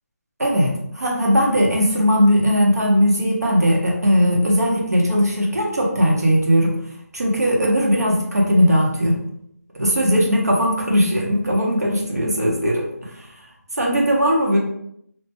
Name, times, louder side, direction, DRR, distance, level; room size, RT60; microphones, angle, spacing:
voice 1, 0.4-6.8 7.1-9.2 9.8-13.3 13.8-14.6, equal, 70° right, -2 dB, 1.1 m, -18 dB
2.8 x 2.2 x 3.0 m, 0.72 s
figure-of-eight pair, 180°, 9 cm